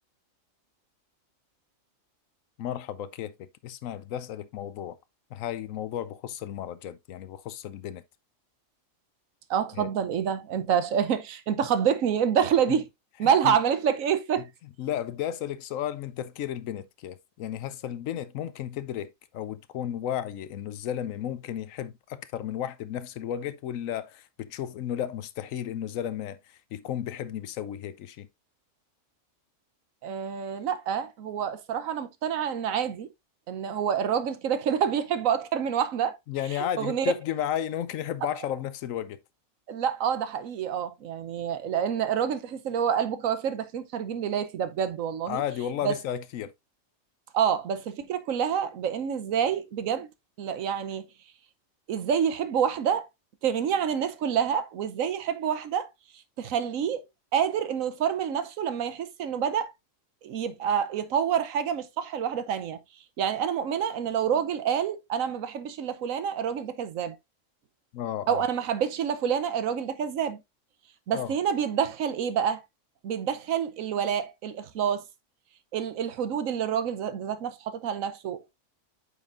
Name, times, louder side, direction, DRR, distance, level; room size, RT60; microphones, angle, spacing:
voice 1, 2.6-5.0 5.3-8.0 9.8-9.9 13.2-13.6 14.8-28.3 36.3-39.2 45.3-46.5 67.9-68.4 71.1-71.3, left 10 dB, 80° left, 1.0 m, -33 dB
voice 2, 9.5-12.9 13.2-14.5 30.0-33.1 33.5-36.2 36.5-37.1 39.7-45.4 45.8-46.0 47.3-50.1 50.4-51.1 51.9-53.1 53.4-55.9 56.4-57.0 57.3-59.7 60.2-62.8 63.2-67.2 68.3-70.4 71.1-72.6 73.0-75.0 75.7-78.5, right 8 dB, 80° right, 1.2 m, -27 dB
8.1 x 5.6 x 2.5 m
omnidirectional pair, 1.4 m